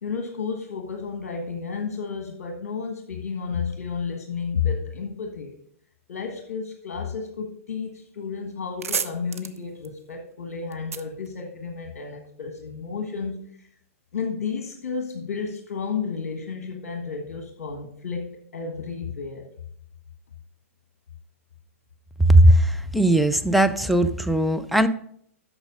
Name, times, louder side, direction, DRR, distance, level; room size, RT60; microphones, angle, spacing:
voice 1, 0.0-5.6 6.1-13.5 14.1-19.5, left 5 dB, 55° left, 3 dB, 1.4 m, -32 dB
sound 1, 8.1-8.2 8.5-12.1, right 6 dB, 75° right, 0.7 m, -34 dB
voice 2, 22.2-24.9, right 1 dB, ahead, 10 dB, 0.5 m, -18 dB
8.8 x 6.2 x 5.3 m, 0.67 s
figure-of-eight pair, 110°, 8 cm